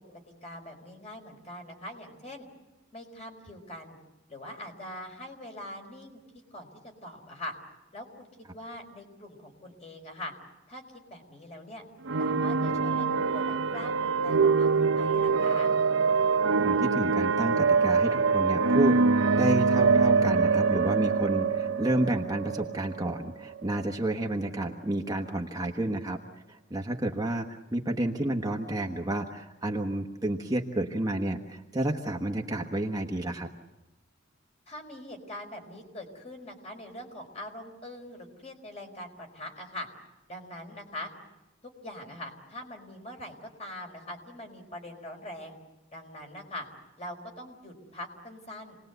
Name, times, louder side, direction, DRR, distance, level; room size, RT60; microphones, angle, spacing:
voice 1, 0.4-2.5 2.9-4.0 4.3-6.2 6.5-6.7 7.0-7.5 7.9-8.3 8.5-10.3 10.7-11.8 12.2-13.1 13.3-15.7 34.7-39.9 40.3-41.1 41.6-45.5 45.9-46.7 47.0-48.8, left 1 dB, 35° left, 2 dB, 4.6 m, -42 dB
sound 1, 12.1-23.7, right 4 dB, 75° right, 0.8 m, -24 dB
voice 2, 16.6-33.5, right 1 dB, 20° right, 1 dB, 1.3 m, -30 dB
28.0 x 20.0 x 8.1 m, 1.0 s
head